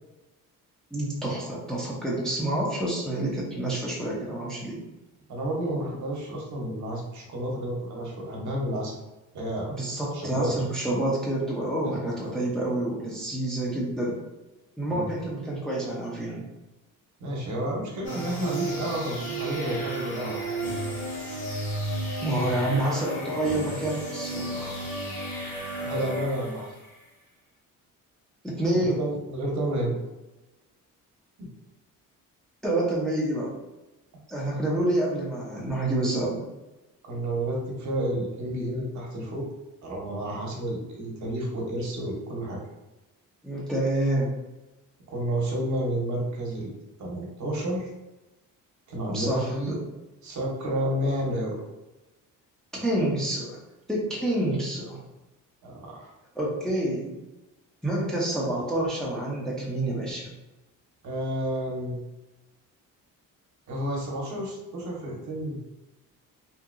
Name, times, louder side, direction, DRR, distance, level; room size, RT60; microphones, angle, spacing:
voice 1, 0.9-4.8 9.7-14.2 14.8-16.5 22.2-24.8 28.4-29.0 32.6-33.5 34.3-36.4 43.4-44.3 49.1-49.8 52.7-53.6 53.9-55.0 56.4-57.1 57.8-60.3, right 1 dB, ahead, -5 dB, 0.6 m, -28 dB
voice 2, 5.3-9.0 9.3-9.7 10.1-10.7 14.9-15.1 17.2-20.7 25.8-26.7 28.7-29.9 31.4-31.5 37.1-39.5 39.8-42.6 45.1-47.9 48.9-49.8 50.2-51.6 55.6-56.1 61.0-62.0 63.7-65.6, right 1 dB, 60° right, -2 dB, 0.9 m, -30 dB
sound 1, 18.0-26.9, right 1 dB, 25° left, 1.0 m, -33 dB
2.8 x 2.7 x 2.5 m, 1.0 s
cardioid pair, 135°, 33 cm